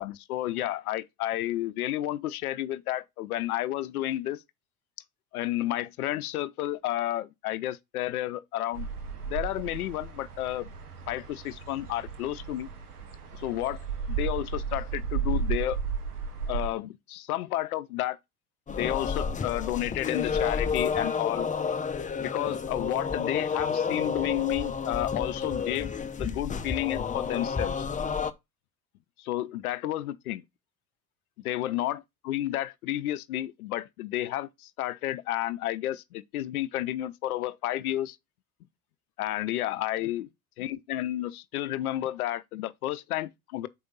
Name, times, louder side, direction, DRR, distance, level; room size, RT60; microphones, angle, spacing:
voice 1, 0.0-4.4 5.3-8.9 9.3-10.7 11.1-12.7 13.3-15.8 16.5-18.2 18.7-21.5 22.2-25.9 26.2-27.9 29.2-30.4 31.4-38.2 39.2-40.3 40.6-43.7, left 14 dB, 75° left, 0.6 m, -31 dB
sound 1, 8.7-16.7, right 6 dB, 85° right, 1.2 m, -34 dB
sound 2, 18.7-28.3, left 6 dB, 15° left, 0.7 m, -30 dB
6.9 x 5.1 x 3.8 m
hypercardioid pair, 70°, 45 cm